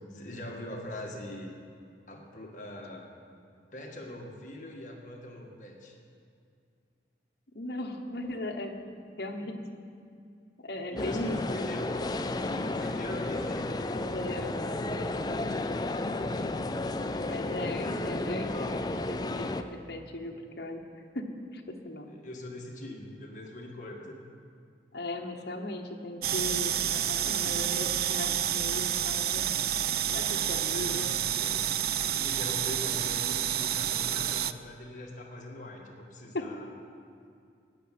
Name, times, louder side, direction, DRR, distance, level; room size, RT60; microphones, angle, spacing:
voice 1, 0.1-1.5 2.1-3.1 3.7-6.0 10.9-12.0 12.3-13.8 22.1-24.2 30.3-31.6 31.9-36.7, left 1 dB, 45° left, 0 dB, 1.6 m, -42 dB
voice 2, 7.5-8.8 9.2-9.6 10.6-11.7 13.9-14.6 15.2-15.7 17.2-20.8 21.1-22.1 24.9-29.5 30.1-31.1 36.3-36.4, left 1 dB, 65° left, 2 dB, 1.1 m, -37 dB
sound 1, 11.0-19.6, left 2 dB, 25° left, 0.4 m, -32 dB
sound 2, 26.2-34.5, right 10 dB, 55° right, 0.3 m, -29 dB
10.0 x 7.5 x 9.3 m, 2.4 s
head